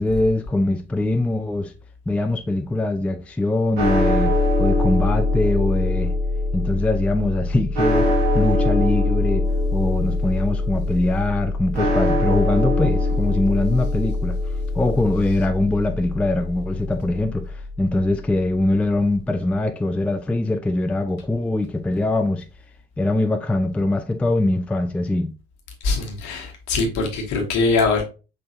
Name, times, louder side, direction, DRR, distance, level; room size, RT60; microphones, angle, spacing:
voice 1, 0.0-1.7 2.1-4.3 4.6-6.1 6.5-8.1 8.3-9.5 9.7-14.4 14.7-22.4 23.0-25.3, left 2 dB, 5° left, 0.4 m, -22 dB
sound 1, 3.8-18.0, left 2 dB, 75° right, 1.4 m, -22 dB
voice 2, 25.8-28.0, left 3 dB, 60° left, 1.3 m, -22 dB
5.2 x 3.2 x 2.6 m
figure-of-eight pair, 45°, 31 cm